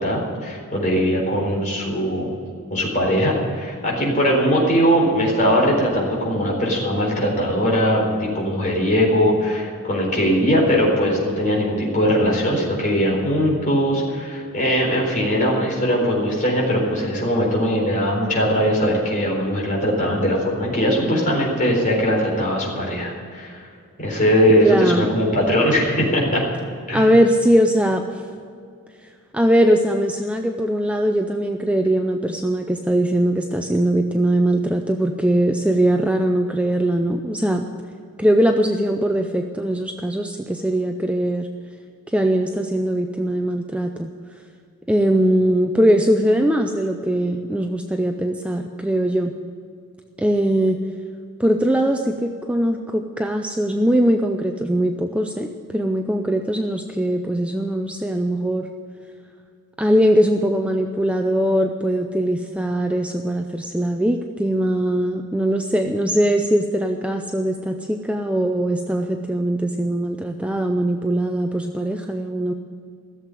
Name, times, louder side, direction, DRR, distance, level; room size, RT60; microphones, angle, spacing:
voice 1, 0.0-2.3 2.7-23.6 24.0-26.4 26.9-27.1, equal, 35° left, -2 dB, 4.0 m, -20 dB
voice 2, 24.6-25.1 26.9-28.0 29.3-37.6 38.2-41.5 42.1-44.1 44.9-49.3 50.2-50.8 51.4-58.7 59.8-72.5, right 1 dB, 5° right, 4 dB, 0.5 m, -21 dB
15.5 x 7.6 x 9.1 m, 2.3 s
head